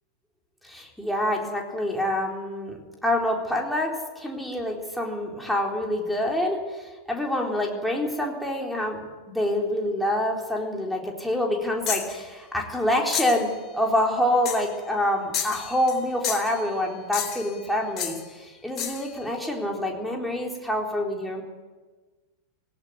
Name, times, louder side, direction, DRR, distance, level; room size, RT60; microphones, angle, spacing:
voice 1, 0.6-13.5 13.7-21.4, left 1 dB, ahead, -1 dB, 4.0 m, -26 dB
sound 1, 11.9-12.2 13.1-13.4 14.5-14.7 15.3-16.6 17.1-17.5 18.0-18.2 18.8-19.1, left 9 dB, 35° left, 3.9 m, -30 dB
17.5 x 17.5 x 9.6 m, 1.3 s
figure-of-eight pair, 90°, 0 cm